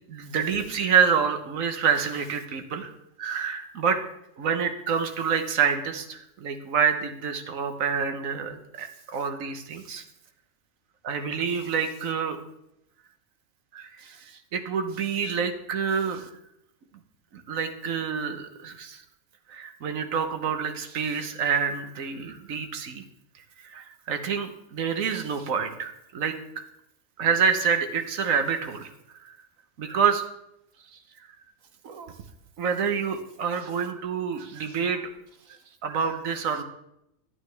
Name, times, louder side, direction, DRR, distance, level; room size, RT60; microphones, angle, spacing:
voice 1, 0.1-2.9 3.2-4.0 4.4-10.0 11.0-12.4 13.7-16.3 17.3-19.0 19.5-23.0 23.6-26.3 27.2-29.4 29.8-30.2 30.9-31.0 31.8-32.1 32.6-35.1 35.5-36.6, right 6 dB, 75° right, 7 dB, 1.3 m, -27 dB
11.0 x 9.4 x 3.3 m, 0.81 s
omnidirectional pair, 1.4 m